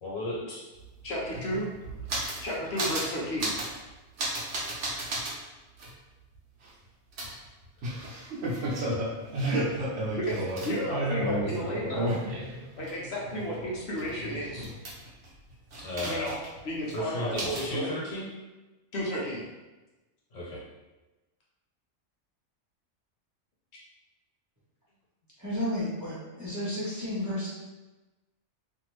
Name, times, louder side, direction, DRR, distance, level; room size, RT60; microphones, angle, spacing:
voice 1, 0.0-0.6 15.8-16.2 16.9-18.3 20.3-20.6, left 1 dB, 85° left, -6 dB, 1.3 m, -34 dB
sound 1, 0.8-0.9 1.1-2.5 2.8-3.1 3.4-3.7 4.2-5.3 5.8-5.9 7.2-12.9 13.2-15.3 15.7-16.6 16.9-17.0 17.4-17.7, right 1 dB, 70° right, 1.0 m, -32 dB
voice 2, 1.0-1.7 2.4-3.5 10.2-10.4 10.6-12.1 12.8-14.7 16.0-16.4 16.6-17.9 18.9-19.4, equal, 65° left, -4 dB, 0.9 m, -32 dB
voice 3, 25.4-27.5, left 1 dB, 15° right, -10 dB, 0.7 m, -32 dB
2.6 x 2.6 x 3.1 m, 1.1 s
omnidirectional pair, 1.3 m